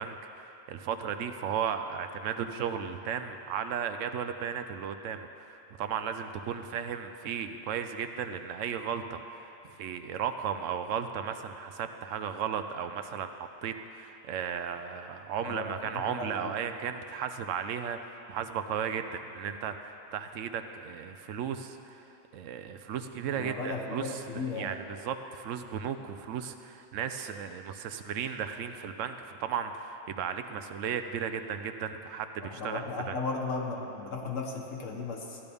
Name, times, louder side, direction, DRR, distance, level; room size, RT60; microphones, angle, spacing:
voice 1, 0.0-22.1 22.3-33.2, right 7 dB, 75° right, 8 dB, 1.0 m, -35 dB
voice 2, 15.4-16.5 23.4-24.7 32.4-35.4, left 3 dB, 80° left, 1 dB, 1.5 m, -36 dB
14.0 x 10.5 x 3.5 m, 2.9 s
omnidirectional pair, 1.3 m